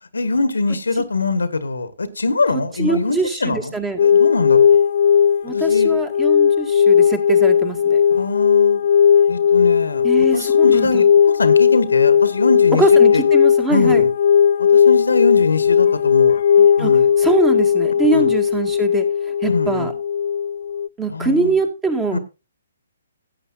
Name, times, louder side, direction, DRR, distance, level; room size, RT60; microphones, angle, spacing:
voice 1, 0.1-4.8 5.5-6.0 8.1-8.8 9.3-12.8 13.1-13.2 13.7-14.1 14.7-16.4 16.8-17.1 18.1-18.3 19.4-19.9 21.1-21.5 22.1-22.2, left 3 dB, 75° left, 12 dB, 1.4 m, -23 dB
voice 2, 2.8-4.0 5.4-8.0 10.0-11.0 12.7-14.0 16.8-16.9 17.2-19.1 19.4-19.9 21.0-22.2, right 3 dB, 10° right, 6 dB, 1.9 m, -22 dB
sound 1, 4.0-20.9, left 8 dB, 50° left, 0.4 m, -16 dB
17.0 x 8.8 x 2.6 m, 0.28 s
figure-of-eight pair, 130°, 0 cm